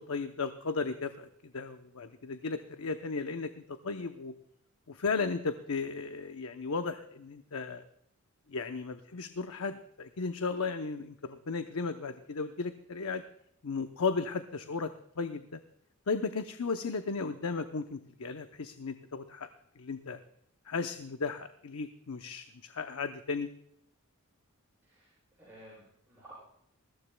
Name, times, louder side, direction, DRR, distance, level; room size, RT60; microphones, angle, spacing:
voice 1, 0.0-4.3 4.9-7.8 8.5-13.2 13.6-15.6 16.1-19.5 19.8-20.2 20.7-23.5, left 4 dB, 80° left, 8 dB, 0.7 m, -35 dB
voice 2, 24.8-26.3, right 1 dB, 10° right, -9 dB, 6.3 m, -55 dB
20.5 x 15.5 x 2.2 m, 0.75 s
head